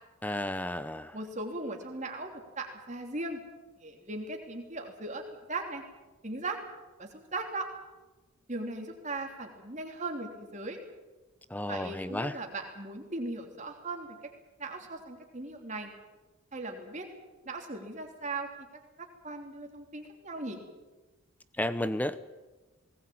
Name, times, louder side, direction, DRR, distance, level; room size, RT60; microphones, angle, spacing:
voice 1, 0.2-1.2 11.5-12.4 21.6-22.3, left 1 dB, 5° left, 14 dB, 0.6 m, -32 dB
voice 2, 1.1-3.4 3.8-5.2 5.5-5.8 6.2-6.6 7.0-7.7 8.5-10.8 11.7-14.2 14.6-15.9 16.5-17.1 17.4-18.7 19.0-20.6, right 2 dB, 30° right, 3 dB, 3.2 m, -38 dB
19.5 x 19.5 x 8.7 m, 1.2 s
head